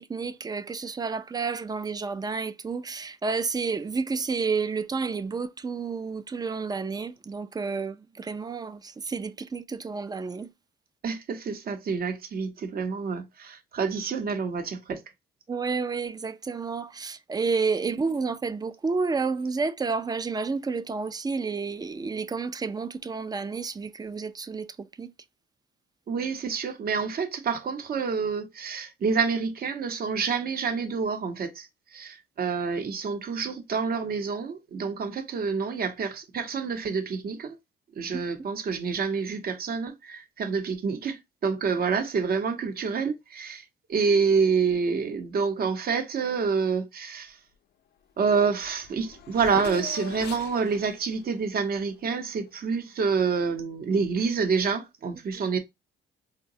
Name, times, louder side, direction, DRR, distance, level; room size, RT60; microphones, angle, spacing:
voice 1, 0.0-10.5 15.5-25.1 38.1-38.2, right 4 dB, 20° right, 0.3 m, -30 dB
voice 2, 11.0-15.0 17.8-17.9 26.1-37.6 38.0-47.4 48.2-55.6, right 5 dB, 50° right, 0.8 m, -28 dB
Race car auto racing / Accelerating revving vroom, 48.6-52.6, left 9 dB, 55° left, 0.5 m, -42 dB
3.8 x 2.2 x 2.6 m
cardioid pair, 90°, 20 cm